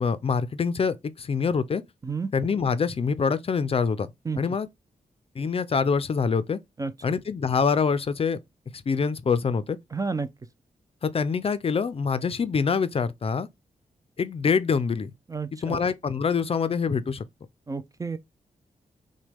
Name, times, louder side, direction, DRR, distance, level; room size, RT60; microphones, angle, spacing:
voice 1, 0.0-1.8 2.3-4.1 4.4-4.7 5.4-6.6 7.0-8.4 8.9-9.8 11.0-13.5 14.2-15.1 15.6-17.2, left 5 dB, 45° left, 0.4 m, -25 dB
voice 2, 9.9-10.3 15.3-15.8 17.7-18.2, right 4 dB, 25° right, 0.4 m, -30 dB
6.1 x 2.2 x 3.4 m
cardioid pair, 90°, 14 cm